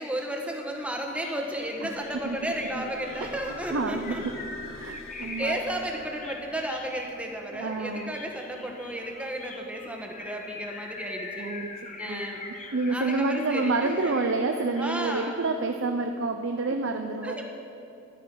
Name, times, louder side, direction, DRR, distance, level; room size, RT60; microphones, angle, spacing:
voice 1, 0.0-4.2 5.2-11.5 12.0-12.4 12.9-14.2 14.8-15.4 16.7-16.8 17.2-17.5, right 1 dB, 5° right, 1 dB, 1.4 m, -33 dB
sound 1, 0.6-15.5, left 3 dB, 40° left, 1.1 m, -43 dB
sound 2, 0.8-0.9 1.3-12.3 13.1-13.2 13.6-13.7, left 1 dB, 85° left, 1.2 m, -50 dB
voice 2, 1.8-2.4 2.8-2.9 3.2-3.3 3.7-4.3 4.8-5.6 7.5-8.1 11.4-11.7 12.1-12.3 12.7-17.4, right 3 dB, 70° right, 5 dB, 0.6 m, -28 dB
13.5 x 11.0 x 5.6 m, 2.8 s
head